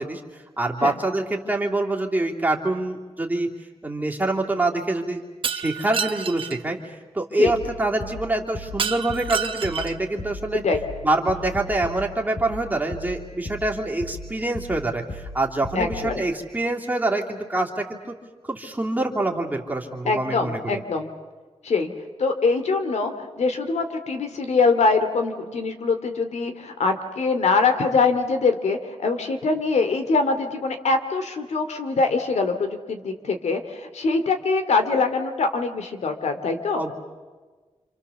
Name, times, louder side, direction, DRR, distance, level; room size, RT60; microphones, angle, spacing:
voice 1, 0.0-3.5 3.8-5.2 5.5-10.6 11.0-18.2 18.4-20.8 36.7-36.9, right 2 dB, 15° right, -1 dB, 3.0 m, -25 dB
Shatter, 5.4-6.6 8.8-10.1, right 7 dB, 50° right, 1.1 m, -28 dB
sound 1, 7.5-16.2, left 1 dB, 55° left, 3.9 m, -37 dB
voice 2, 15.7-16.2 20.1-21.1 21.6-21.9 22.2-36.8, left 4 dB, 80° left, 7 dB, 2.8 m, -23 dB
29.0 x 28.0 x 7.1 m, 1.4 s
wide cardioid pair, 165°, 11 cm